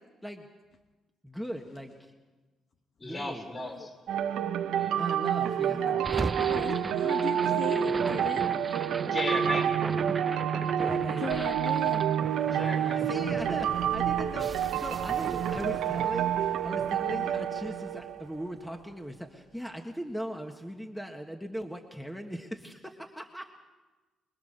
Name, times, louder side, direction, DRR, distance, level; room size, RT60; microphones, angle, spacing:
voice 1, 1.2-2.1 3.0-3.5 4.9-6.0 10.8-11.2 12.5-23.5, equal, 5° left, 3 dB, 1.7 m, -39 dB
voice 2, 3.0-4.0 4.6-5.0 9.1-9.8 12.5-13.1, left 2 dB, 30° left, 2 dB, 5.4 m, -36 dB
sound 1, 4.1-18.5, right 9 dB, 80° right, 1.1 m, -28 dB
voice 3, 5.6-6.1 6.3-8.6 11.2-12.6 17.0-17.3, left 6 dB, 60° left, 5 dB, 1.3 m, -39 dB
sound 2, 6.0-18.2, right 3 dB, 25° right, 0.7 m, -38 dB
25.0 x 21.5 x 6.8 m, 1.3 s
cardioid pair, 90°, 0 cm